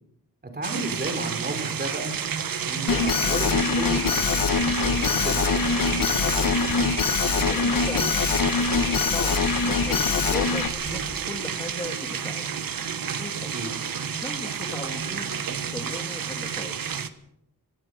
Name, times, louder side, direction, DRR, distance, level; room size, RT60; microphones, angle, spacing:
voice 1, 0.4-2.2 2.7-4.5 4.8-5.5 13.5-13.7, right 1 dB, 30° right, 5 dB, 3.7 m, -32 dB
sound 1, 0.6-17.1, right 7 dB, 70° right, 1.4 m, -30 dB
Alarm, 2.9-10.7, left 6 dB, 70° left, 1.3 m, -24 dB
sound 2, 4.2-11.2, left 2 dB, 45° left, 7.8 m, -41 dB
voice 2, 7.2-8.2 8.9-9.3 9.6-12.6 13.0-13.5 14.2-16.8, left 1 dB, 15° left, 3 dB, 1.9 m, -38 dB
24.0 x 17.5 x 6.4 m, 0.76 s
wide cardioid pair, 175°, 35 cm